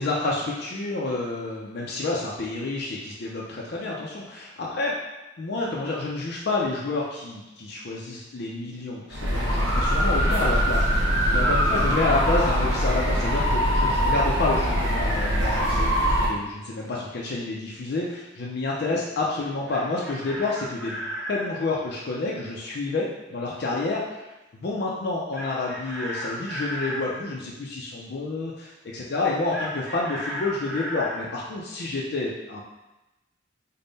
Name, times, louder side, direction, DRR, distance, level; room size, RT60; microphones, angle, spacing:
voice 1, 0.0-4.9 5.4-32.6, left 3 dB, 55° left, -3 dB, 0.4 m, -29 dB
sound 1, 9.1-16.3, equal, 75° right, 1.1 m, -22 dB
Chicken rooster, 19.7-21.5 25.3-27.1 29.5-31.3, equal, ahead, 1.4 m, -34 dB
3.5 x 2.1 x 3.9 m, 1.0 s
head